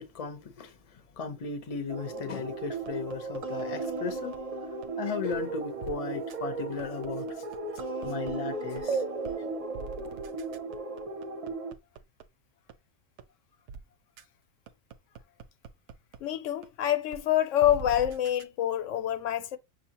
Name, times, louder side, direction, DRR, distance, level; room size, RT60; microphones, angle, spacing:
voice 1, 0.0-4.4 5.0-7.4 8.0-9.0, left 5 dB, 35° left, 0.7 m, -36 dB
sound 1, 1.9-11.7, right 3 dB, 40° right, 0.6 m, -35 dB
sound 2, 2.9-4.4 4.8-4.9 5.3-5.4 5.8-5.9 6.3-6.4 6.8-8.3 8.8-8.9 9.2-9.4 9.7-12.2 12.7-12.8 13.2-13.3 13.7-13.8 14.2-14.3 14.7-16.2 16.6-16.7 17.1-17.2 17.6-18.4, right 5 dB, 75° right, 0.9 m, -43 dB
voice 2, 16.2-19.6, left 11 dB, 80° left, 0.9 m, -26 dB
6.3 x 2.7 x 2.8 m
omnidirectional pair, 1.3 m